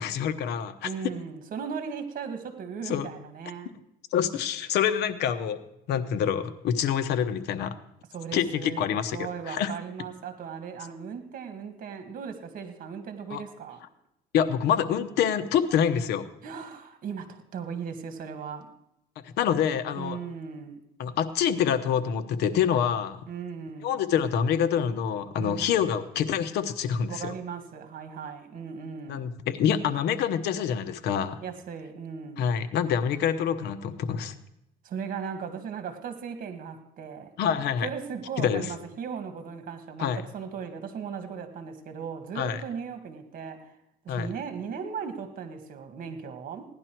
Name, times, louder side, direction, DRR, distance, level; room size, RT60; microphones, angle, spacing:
voice 1, 0.0-0.9 2.9-3.1 4.1-5.6 5.9-7.8 8.3-9.2 9.5-9.7 13.3-13.4 14.3-16.2 19.2-20.2 21.0-23.2 23.8-27.3 29.1-31.4 32.4-34.3 37.4-37.9 38.4-38.6 40.0-40.2 42.3-42.6 44.1-44.3, left 8 dB, 80° left, 10 dB, 1.0 m, -26 dB
voice 2, 0.8-3.7 8.1-8.8 9.1-13.8 16.4-18.7 19.9-20.8 23.3-24.0 25.4-25.8 27.1-29.3 31.4-32.5 34.8-37.3 37.8-43.6 44.0-46.7, right 6 dB, 55° right, 7 dB, 1.7 m, -37 dB
16.5 x 11.0 x 4.5 m, 0.82 s
cardioid pair, 110°, 17 cm